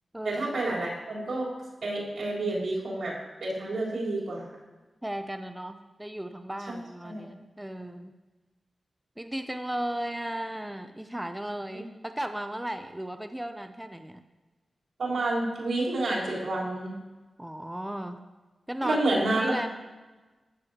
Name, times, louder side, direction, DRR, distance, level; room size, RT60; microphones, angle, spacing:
voice 1, 0.2-1.5 1.8-4.6 7.0-7.2 11.7-11.8 15.0-17.0 18.8-19.5, right 2 dB, 85° right, -6 dB, 3.7 m, -29 dB
voice 2, 5.0-8.1 9.2-14.2 17.4-18.2 18.7-19.0 19.3-19.7, right 1 dB, 10° right, 8 dB, 0.4 m, -35 dB
15.0 x 8.2 x 2.8 m, 1.2 s
wide cardioid pair, 115°, 0 cm